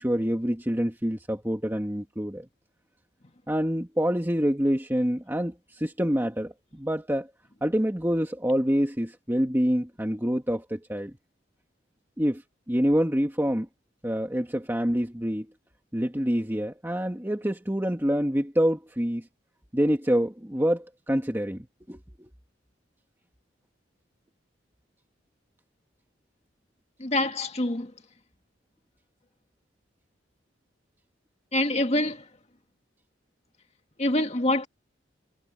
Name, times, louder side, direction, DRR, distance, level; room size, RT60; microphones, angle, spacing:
voice 1, 0.0-2.5 3.5-7.3 7.6-11.1 12.2-12.4 12.7-13.7 14.0-15.5 15.9-19.3 19.7-22.3, equal, 10° right, 1.8 m, -26 dB
voice 2, 27.0-27.9 31.5-32.2 34.0-34.7, left 1 dB, 35° left, 2.0 m, -25 dB
head